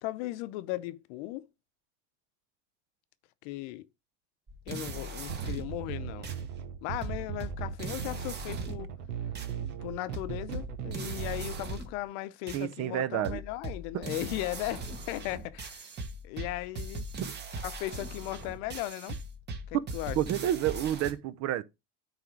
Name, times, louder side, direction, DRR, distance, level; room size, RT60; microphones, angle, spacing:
voice 1, 0.0-1.5 3.4-3.9 4.7-6.3 6.8-8.9 9.6-15.9 16.2-17.0 17.6-19.2 19.7-20.2, left 16 dB, 70° left, 0.8 m, -37 dB
sound 1, 4.5-5.8 6.2-6.4 7.0-8.9 9.4-9.5 10.1-12.0 12.5-12.6 13.2-21.1, right 2 dB, 30° right, 1.6 m, -40 dB
sound 2, 5.3-11.7, right 8 dB, 90° right, 1.4 m, -38 dB
voice 2, 12.5-13.4 13.9-14.0 17.2-17.3 19.7-19.9 20.2-21.6, right 12 dB, 45° right, 0.8 m, -29 dB
9.1 x 3.6 x 5.9 m
supercardioid pair, 135°, 37 cm